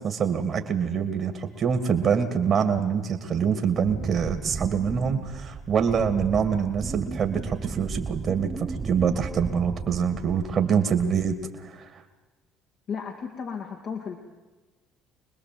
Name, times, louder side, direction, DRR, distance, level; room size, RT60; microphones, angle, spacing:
voice 1, 0.0-12.0, right 7 dB, 45° right, 6 dB, 2.3 m, -25 dB
Wind, 3.8-10.7 11.0-11.4, right 4 dB, 30° right, 0.9 m, -35 dB
voice 2, 12.9-14.2, left 6 dB, 50° left, 2 dB, 2.3 m, -34 dB
25.5 x 20.5 x 7.8 m, 1.2 s
hypercardioid pair, 65°, 0 cm